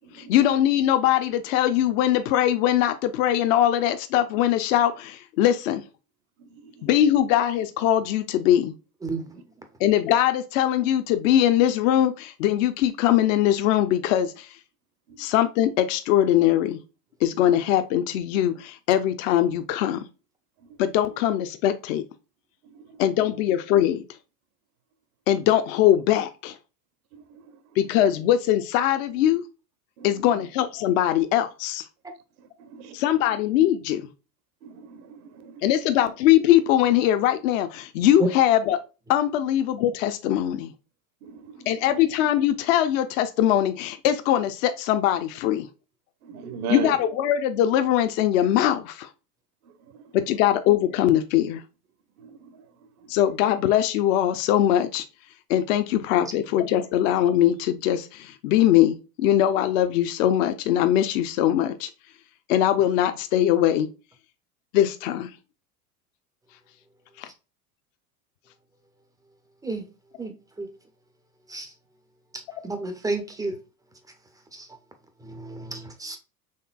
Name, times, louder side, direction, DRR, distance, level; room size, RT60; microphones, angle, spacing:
voice 1, 0.3-5.8 6.8-8.7 9.8-14.5 15.2-16.8 17.2-20.0 20.8-22.0 23.0-24.0 25.3-26.5 27.8-29.4 30.0-31.8 32.9-34.1 35.6-38.8 39.1-40.7 41.7-45.7 46.7-49.1 50.1-51.6 53.1-55.0 55.5-61.9 62.5-63.9 64.7-65.3 67.2-67.3, left 11 dB, 60° left, 0.5 m, -21 dB
voice 2, 34.6-35.1 35.4-35.5 41.2-41.7 46.2-47.0 52.2-52.5, right 7 dB, 70° right, 0.8 m, -35 dB
voice 3, 72.6-73.5 74.5-74.7 75.3-76.2, right 2 dB, 10° right, 0.4 m, -30 dB
4.3 x 3.2 x 2.2 m
hypercardioid pair, 85°, 46 cm